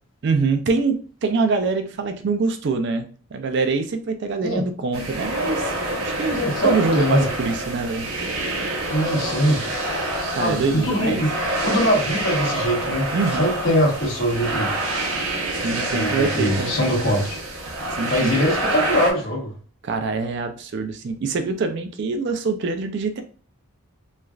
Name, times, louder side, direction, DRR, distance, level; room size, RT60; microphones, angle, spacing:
voice 1, 0.2-5.7 6.0-6.4 6.6-8.1 10.3-11.3 13.1-13.5 15.3-15.4 15.6-16.7 18.0-18.3 19.8-23.2, right 4 dB, 55° right, 7 dB, 0.4 m, -24 dB
sound 1, 4.9-19.1, right 1 dB, 85° right, 0.8 m, -27 dB
voice 2, 6.3-7.3 8.9-9.6 10.4-11.3 11.6-13.1 13.4-14.7 15.9-17.3 18.1-19.5, equal, 60° left, -3 dB, 1.2 m, -22 dB
3.1 x 2.4 x 2.3 m, 0.40 s
head